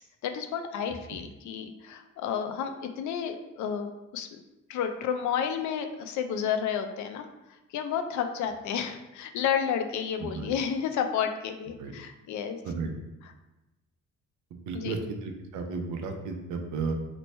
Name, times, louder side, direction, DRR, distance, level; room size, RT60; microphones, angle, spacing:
voice 1, 0.0-4.3 4.7-7.3 7.7-12.6 14.7-14.9, left 8 dB, 75° left, 6 dB, 0.5 m, -31 dB
voice 2, 10.2-10.5 11.8-11.9 12.6-12.9 14.5-16.9, right 4 dB, 80° right, 5 dB, 0.6 m, -33 dB
3.0 x 2.2 x 4.1 m, 1.0 s
cardioid pair, 90°, 30 cm